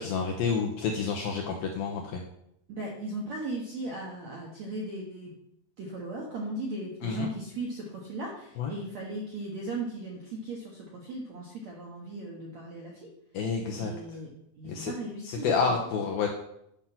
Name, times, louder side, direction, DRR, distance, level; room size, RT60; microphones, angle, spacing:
voice 1, 0.0-2.2 7.0-7.3 8.6-8.7 13.3-13.9 14.6-14.9 15.2-16.3, left 5 dB, 75° left, 1 dB, 2.2 m, -29 dB
voice 2, 2.7-5.3 5.8-13.1 13.7-14.3 14.6-15.8, right 2 dB, 70° right, -2 dB, 1.7 m, -37 dB
10.5 x 6.0 x 5.7 m, 0.79 s
omnidirectional pair, 5.3 m